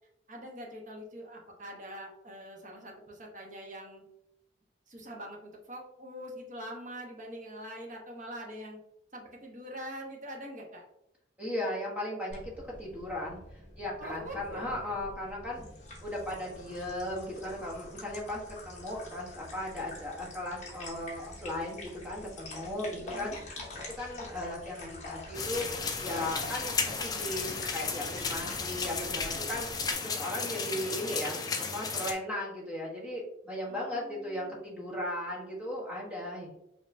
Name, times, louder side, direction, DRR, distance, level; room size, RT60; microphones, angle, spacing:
voice 1, 0.3-4.0 4.9-8.8 9.1-10.8 14.0-14.6 23.1-23.4 30.5-30.8 33.7-34.6, equal, 40° right, -1 dB, 0.9 m, -44 dB
voice 2, 11.4-12.5 12.8-15.6 16.0-23.6 24.0-29.7 30.0-31.4 31.7-36.5, left 1 dB, 10° right, -4 dB, 1.0 m, -37 dB
sound 1, 12.3-29.9, left 2 dB, 35° left, 1.1 m, -46 dB
sound 2, 25.3-32.1, left 4 dB, 20° left, 0.3 m, -34 dB
5.3 x 2.9 x 2.6 m, 0.82 s
head